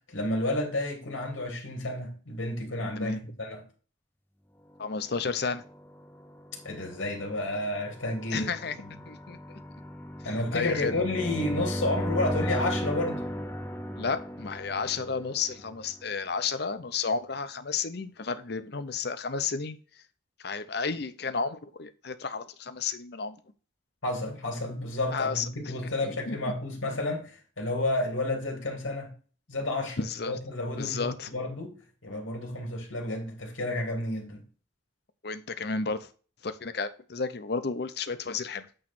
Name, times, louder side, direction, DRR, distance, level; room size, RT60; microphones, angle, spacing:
voice 1, 0.1-3.1 3.4-3.6 6.6-8.5 8.8-8.9 10.2-13.2 24.0-29.1 29.5-31.7 32.0-34.4, left 2 dB, 90° left, 2.5 m, -31 dB
voice 2, 4.8-5.6 8.3-8.8 9.1-9.6 10.5-10.9 14.0-19.8 20.4-23.4 25.1-25.4 26.0-26.4 30.0-30.4 30.8-31.3 35.2-36.1 36.4-38.7, left 5 dB, 55° left, 0.6 m, -32 dB
sound 1, 5.4-16.2, equal, 10° left, 0.6 m, -36 dB
8.6 x 3.1 x 6.0 m
head